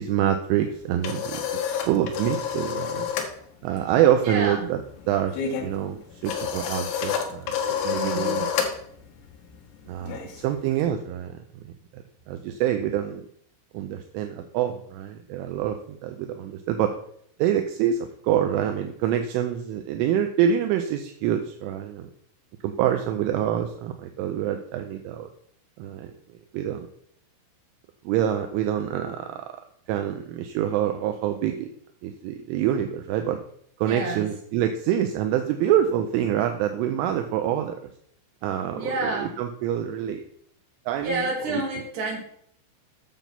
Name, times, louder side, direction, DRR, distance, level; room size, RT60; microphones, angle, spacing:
voice 1, 0.0-3.1 3.6-4.8 5.1-7.6 7.8-8.5 9.9-11.4 11.7-13.3 13.7-17.0 17.4-22.1 22.6-25.3 25.8-26.1 26.5-26.9 28.0-29.5 29.9-31.7 32.0-33.4 33.8-37.8 38.4-40.2 40.9-41.6, right 10 dB, 80° right, 6 dB, 3.1 m, -26 dB
sound 1, 0.7-3.4 3.6-10.9, left 7 dB, 70° left, 3.5 m, -30 dB
voice 2, 4.2-4.7 7.9-8.5 33.8-34.3 38.7-39.4 41.0-42.2, right 2 dB, 45° right, -2 dB, 3.6 m, -29 dB
9.1 x 6.8 x 5.9 m, 0.67 s
omnidirectional pair, 5.9 m